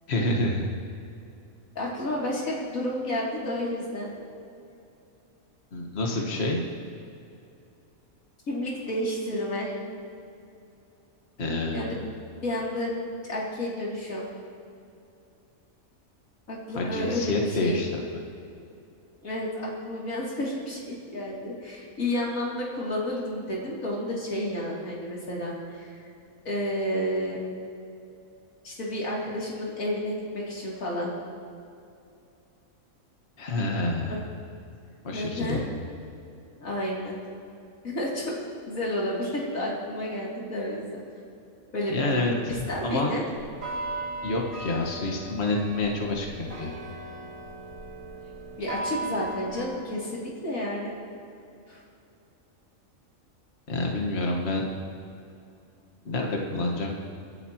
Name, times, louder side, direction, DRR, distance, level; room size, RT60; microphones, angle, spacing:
voice 1, 0.1-0.7 5.7-6.6 11.4-12.1 16.8-18.0 33.4-34.2 35.0-35.7 41.9-43.2 44.2-46.7 53.7-54.7 56.1-57.0, left 2 dB, 50° left, 0 dB, 1.7 m, -28 dB
voice 2, 1.7-4.1 8.5-9.7 11.7-12.0 12.4-14.3 16.5-17.8 19.2-26.1 26.4-27.4 28.6-31.1 35.1-35.6 36.6-37.2 37.8-38.4 38.7-41.0 41.7-42.3 42.7-43.2 48.6-50.9 51.7-51.8, left 1 dB, 80° left, -5 dB, 3.3 m, -31 dB
sound 1, 43.4-49.6, right 2 dB, 35° right, 2.9 m, -37 dB
24.0 x 11.5 x 3.0 m, 2.6 s
omnidirectional pair, 1.4 m